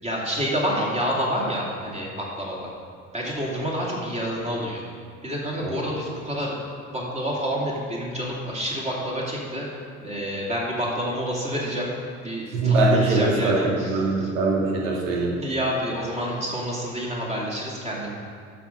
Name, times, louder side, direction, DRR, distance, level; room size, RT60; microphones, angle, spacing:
voice 1, 0.0-2.7 3.1-4.8 5.2-6.6 6.9-11.9 12.2-14.3 15.4-18.1, equal, 15° right, -3 dB, 2.5 m, -28 dB
voice 2, 12.5-15.3, right 2 dB, 65° right, -3 dB, 2.2 m, -22 dB
11.5 x 5.0 x 5.2 m, 2.2 s
figure-of-eight pair, 70°, 43 cm